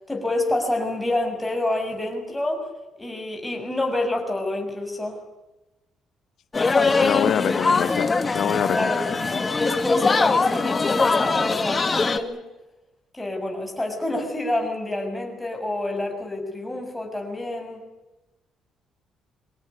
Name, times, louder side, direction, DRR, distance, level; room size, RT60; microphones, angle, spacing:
voice 1, 0.1-2.6 3.0-5.2 8.4-9.0 9.6-12.4 13.1-17.8, left 2 dB, 5° left, 2 dB, 6.7 m, -27 dB
sound 1, 6.5-12.2, left 4 dB, 25° left, 1.9 m, -22 dB
voice 2, 6.8-9.0 9.3-9.4, left 10 dB, 65° left, 12 dB, 1.0 m, -26 dB
24.5 x 18.5 x 9.6 m, 1.0 s
cardioid pair, 135°, 0 cm